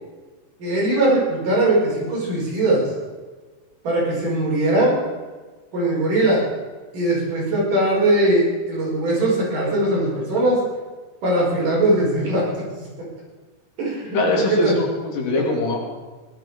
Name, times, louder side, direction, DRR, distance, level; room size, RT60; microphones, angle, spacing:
voice 1, 0.6-2.9 3.8-5.0 5.7-6.4 6.9-10.6 11.2-12.4 13.8-14.2 14.5-14.7 15.3-15.4, right 1 dB, 65° right, -5 dB, 6.8 m, -20 dB
voice 2, 14.1-15.8, left 2 dB, 70° left, -1 dB, 4.2 m, -22 dB
18.0 x 12.5 x 5.0 m, 1.3 s
omnidirectional pair, 4.0 m